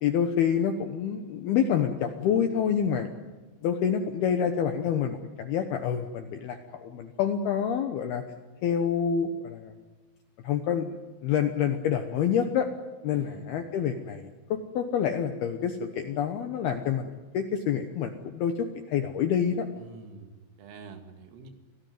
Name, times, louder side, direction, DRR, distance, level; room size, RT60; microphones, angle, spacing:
voice 1, 0.0-3.1 3.6-8.2 8.6-9.7 10.4-11.0 11.2-12.7 13.0-14.3 14.7-19.7, left 8 dB, 75° left, 7 dB, 2.4 m, -27 dB
voice 2, 13.1-13.6 19.7-21.5, right 4 dB, 75° right, 6 dB, 4.8 m, -47 dB
26.0 x 18.0 x 9.4 m, 1.3 s
omnidirectional pair, 5.9 m